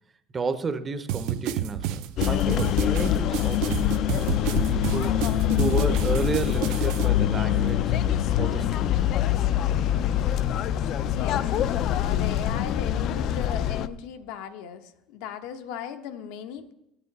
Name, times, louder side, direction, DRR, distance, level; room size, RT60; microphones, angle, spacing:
voice 1, 0.3-5.1 5.6-7.9 8.4-9.0, right 4 dB, 20° right, 11 dB, 0.6 m, -32 dB
sound 1, 1.1-7.1, right 11 dB, 65° right, 0.6 m, -31 dB
sound 2, 2.2-13.9, left 11 dB, 45° left, 0.4 m, -24 dB
voice 2, 11.1-11.5 11.9-16.7, left 9 dB, 75° left, 9 dB, 1.0 m, -37 dB
14.0 x 8.6 x 4.1 m, 0.84 s
cardioid pair, 160°, 0 cm